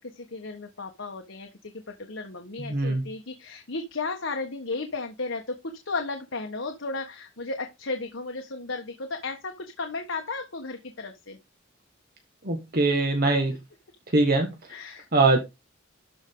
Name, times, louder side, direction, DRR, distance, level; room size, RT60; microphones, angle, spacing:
voice 1, 0.2-1.5 2.1-5.6 5.8-11.4 14.7-15.1, left 3 dB, 70° left, 1.4 m, -34 dB
voice 2, 2.6-3.0 12.4-13.5 14.1-14.5 15.1-15.4, right 3 dB, 50° right, 1.7 m, -22 dB
12.5 x 5.1 x 3.8 m
head